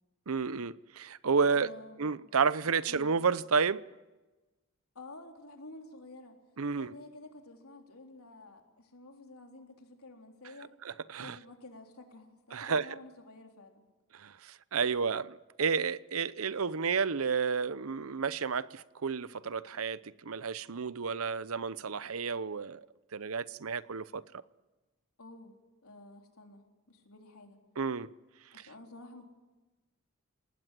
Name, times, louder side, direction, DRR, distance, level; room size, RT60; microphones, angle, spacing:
voice 1, 0.3-1.7 2.0-3.8 6.6-6.9 10.8-11.4 12.5-12.9 14.1-22.8 23.1-24.2 27.8-28.1, right 5 dB, 80° right, 0.7 m, -31 dB
voice 2, 1.5-2.0 2.9-3.1 4.9-6.4 6.7-10.7 11.2-13.8 25.2-25.5 25.8-27.6 28.5-29.2, left 2 dB, 85° left, 3.9 m, -51 dB
28.5 x 19.0 x 7.7 m
head